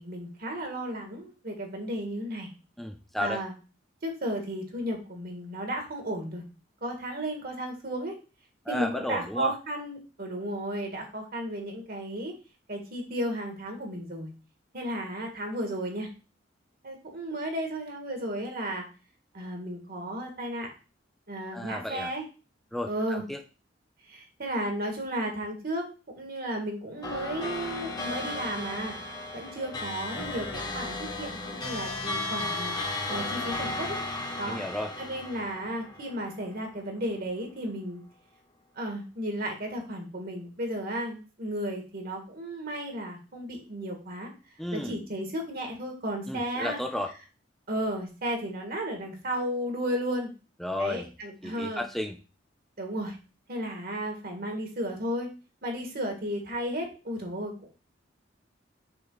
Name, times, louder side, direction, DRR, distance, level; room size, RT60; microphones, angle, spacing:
voice 1, 0.0-2.5 3.2-3.5 4.0-6.4 6.8-8.2 8.7-12.3 12.7-14.3 14.7-16.1 16.8-18.8 19.3-20.7 21.3-22.2 22.9-23.2 24.1-25.9 26.1-28.9 29.3-32.8 33.1-34.0 34.4-34.6 35.0-38.0 38.8-44.3 44.7-46.8 47.7-50.3 50.8-51.8 52.8-53.2 53.5-55.3 55.6-57.5, right 1 dB, 55° right, 2 dB, 1.8 m, -34 dB
voice 2, 2.8-3.4 8.7-9.5 21.5-22.1 22.7-23.4 34.5-34.9 44.6-45.0 46.3-47.1 50.6-51.1 51.4-52.2, left 1 dB, ahead, 3 dB, 0.4 m, -33 dB
sound 1, 27.0-36.7, left 2 dB, 20° left, 1.1 m, -35 dB
6.2 x 3.6 x 4.7 m, 0.33 s
head